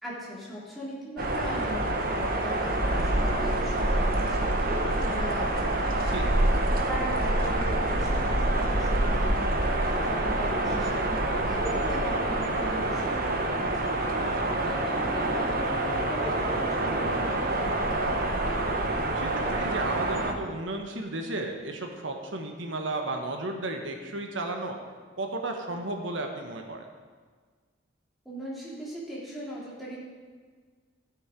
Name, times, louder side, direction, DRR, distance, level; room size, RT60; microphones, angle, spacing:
voice 1, 0.0-18.3 28.2-30.0, equal, ahead, -7 dB, 3.4 m, -39 dB
sound 1, 1.2-20.3, right 1 dB, 50° right, 1.2 m, -27 dB
voice 2, 14.1-14.5 19.2-24.8 25.2-26.8, right 2 dB, 85° right, 3 dB, 1.3 m, -34 dB
14.5 x 8.0 x 5.2 m, 1.6 s
head